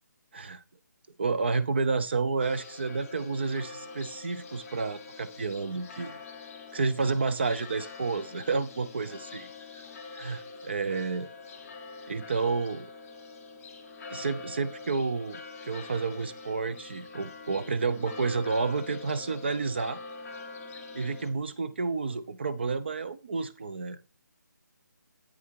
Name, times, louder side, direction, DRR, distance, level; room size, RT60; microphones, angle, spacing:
voice 1, 0.3-0.6 1.2-6.2 6.7-9.5 9.7-9.8 10.1-11.3 12.1-12.8 14.1-20.0 20.9-24.0, right 4 dB, 35° right, 0.5 m, -30 dB
sound 1, 2.4-21.3, left 3 dB, 5° left, 0.6 m, -44 dB
8.5 x 5.9 x 4.7 m
hypercardioid pair, 175°, 10 cm